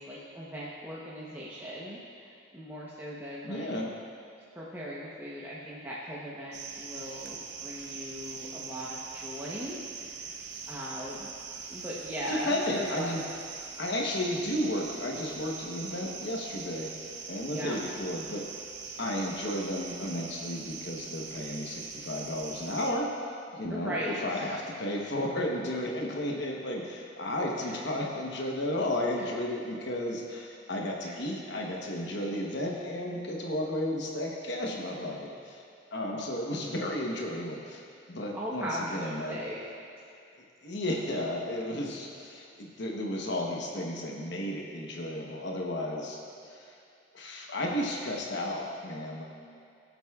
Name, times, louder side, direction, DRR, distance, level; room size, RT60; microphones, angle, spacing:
voice 1, 0.0-3.7 4.5-10.4 10.7-11.3 11.7-13.1 17.5-17.8 23.7-24.6 27.7-27.8 29.2-29.3 31.0-31.1 38.3-39.6, equal, 10° right, -7 dB, 0.9 m, -38 dB
voice 2, 3.4-3.9 12.3-13.2 13.8-16.9 17.3-18.5 19.0-23.1 23.5-35.6 35.9-37.8 38.1-39.4 40.6-46.2 46.5-46.8 47.1-49.2, left 1 dB, 65° left, -1 dB, 1.0 m, -33 dB
sound 1, 6.5-22.9, right 5 dB, 60° right, 0.7 m, -42 dB
17.0 x 8.0 x 2.4 m, 2.5 s
head